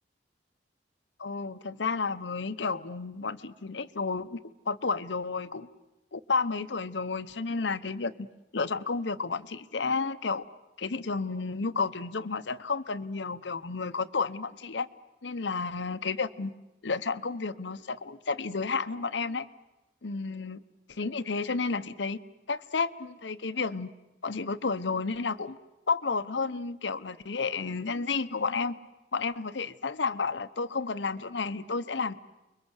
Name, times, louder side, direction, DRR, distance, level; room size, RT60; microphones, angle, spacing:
voice 1, 1.2-4.4 4.7-5.7 6.1-8.3 8.5-10.4 10.8-14.9 15.2-16.5 16.8-19.5 20.0-20.6 20.9-22.2 22.5-23.9 24.2-25.6 25.9-28.7 29.1-32.2, left 4 dB, 75° left, 10 dB, 0.9 m, -31 dB
30.0 x 22.5 x 8.1 m, 1.0 s
head